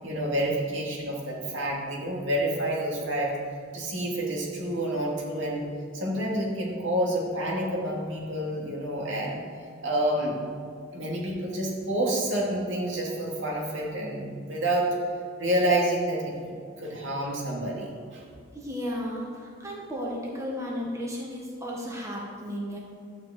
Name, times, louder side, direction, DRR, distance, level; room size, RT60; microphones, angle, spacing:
voice 1, 0.0-3.3 3.7-5.7 5.9-9.4 9.8-10.4 10.9-14.9 15.4-18.2, right 1 dB, 70° right, -2 dB, 2.7 m, -28 dB
voice 2, 18.5-22.8, equal, 15° right, -3 dB, 1.7 m, -34 dB
12.5 x 5.8 x 7.8 m, 2.2 s
head